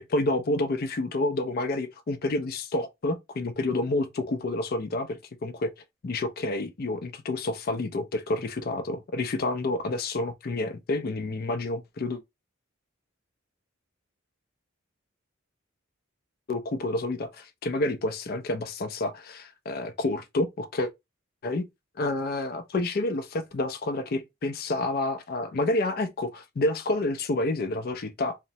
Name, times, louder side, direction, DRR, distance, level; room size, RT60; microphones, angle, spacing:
voice 1, 0.0-5.7 6.0-12.2 16.5-20.9 21.4-21.7 22.0-28.4, left 2 dB, 45° left, 0.4 m, -29 dB
3.0 x 2.1 x 2.7 m
head